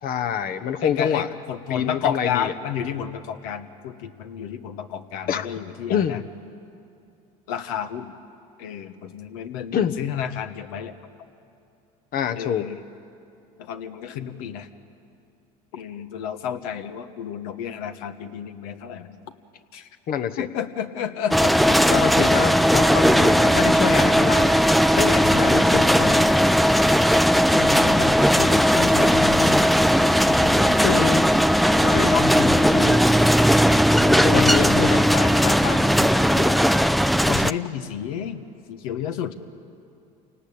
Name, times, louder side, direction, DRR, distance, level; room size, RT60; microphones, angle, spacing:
voice 1, 0.0-1.3 1.7-2.5 5.3-5.5 5.9-6.2 9.7-9.9 12.1-12.6 20.1-20.5 21.9-24.6 25.0-26.4 30.8-31.3 31.8-32.1 34.2-35.0, left 8 dB, 55° left, 9 dB, 1.1 m, -26 dB
voice 2, 0.8-6.2 7.5-8.1 8.6-10.9 12.4-12.8 13.6-14.7 15.7-19.2 19.7-19.9 20.4-22.0 27.5-29.7 30.3-30.8 31.9-33.1 33.9-36.6 37.3-39.3, left 9 dB, 80° left, 8 dB, 1.4 m, -31 dB
sound 1, 21.3-37.5, equal, ahead, 0.5 m, -18 dB
27.5 x 18.5 x 8.7 m, 2.6 s
supercardioid pair, 80°, 18 cm